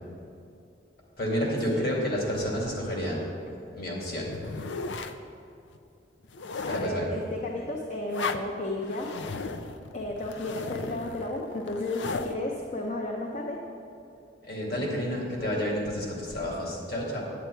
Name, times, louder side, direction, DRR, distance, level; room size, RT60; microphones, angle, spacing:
voice 1, 1.2-3.2 3.7-4.3 6.7-7.1 14.4-17.2, equal, 55° left, -3 dB, 2.3 m, -30 dB
sound 1, 4.3-5.2 5.7-5.8 6.2-7.0 8.1-8.5 8.8-12.3, left 4 dB, 75° left, 0.5 m, -36 dB
voice 2, 6.6-9.1 9.9-13.6, left 2 dB, 40° left, 0 dB, 0.7 m, -33 dB
9.4 x 8.8 x 4.5 m, 2.6 s
head